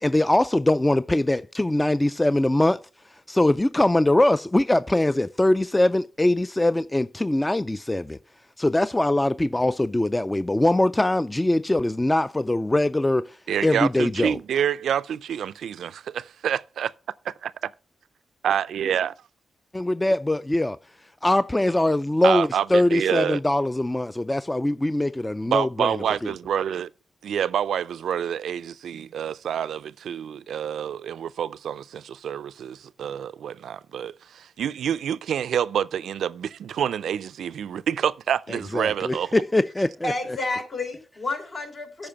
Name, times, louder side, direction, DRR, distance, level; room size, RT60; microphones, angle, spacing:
voice 1, 0.0-2.8 3.3-8.2 8.6-13.4 13.6-14.4 19.7-20.8 21.2-25.9 38.7-40.1, left 1 dB, 15° left, 0.3 m, -22 dB
voice 2, 13.5-16.9 17.2-17.7 18.4-19.1 22.2-23.4 25.4-26.9 27.2-39.3, right 9 dB, 85° right, 0.4 m, -27 dB
voice 3, 40.0-42.1, left 2 dB, 60° left, 3.3 m, -30 dB
8.7 x 5.2 x 6.7 m
cardioid pair, 75°, 0 cm